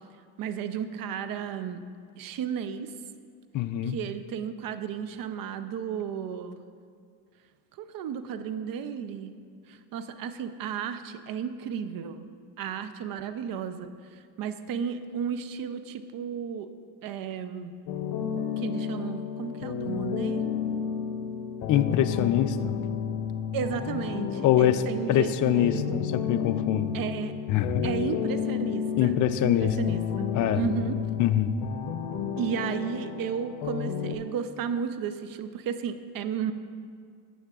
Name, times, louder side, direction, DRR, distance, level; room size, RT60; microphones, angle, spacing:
voice 1, 0.4-1.8 2.1-2.9 3.9-6.6 7.8-9.4 9.7-12.3 12.6-16.7 17.0-17.7 18.6-20.4 23.5-26.0 26.9-27.3 27.8-29.2 29.4-30.3 30.5-31.0 32.4-36.5, right 7 dB, 45° right, 10 dB, 0.7 m, -33 dB
voice 2, 3.5-4.0 21.7-22.8 24.4-24.8 25.1-27.0 27.5-27.9 29.0-30.0 30.3-30.7 31.2-31.5, left 11 dB, 40° left, 11 dB, 0.5 m, -24 dB
sound 1, 17.9-34.2, left 7 dB, 55° left, 0.9 m, -31 dB
14.0 x 8.7 x 2.4 m, 2.1 s
supercardioid pair, 95°, 48 cm